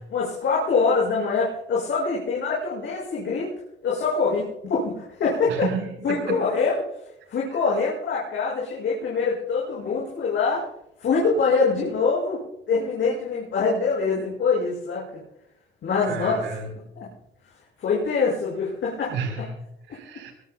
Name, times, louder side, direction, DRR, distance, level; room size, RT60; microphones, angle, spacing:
voice 1, 0.1-3.5 3.8-5.7 6.0-6.8 7.3-10.7 11.0-12.4 12.7-15.0 15.8-16.5 17.0-17.1 17.8-19.5 19.9-20.0, left 4 dB, 70° left, -5 dB, 6.4 m, -24 dB
voice 2, 5.4-6.4 16.1-17.0 19.1-19.4 19.9-20.3, right 5 dB, 80° right, 4 dB, 4.4 m, -31 dB
22.5 x 21.5 x 2.3 m, 0.80 s
cardioid pair, 90°, 20 cm